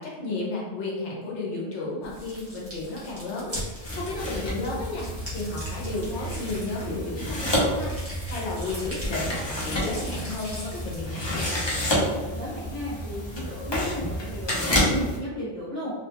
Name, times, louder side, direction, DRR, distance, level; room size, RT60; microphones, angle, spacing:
voice 1, 0.0-11.4, left 2 dB, 80° left, -3 dB, 1.0 m, -33 dB
sound 1, 2.0-11.1, equal, 15° right, 0.7 m, -40 dB
sound 2, 3.8-15.2, left 1 dB, 35° left, 0.4 m, -29 dB
voice 2, 12.0-15.9, equal, 65° left, -10 dB, 1.1 m, -34 dB
2.4 x 2.3 x 2.8 m, 1.3 s
omnidirectional pair, 1.2 m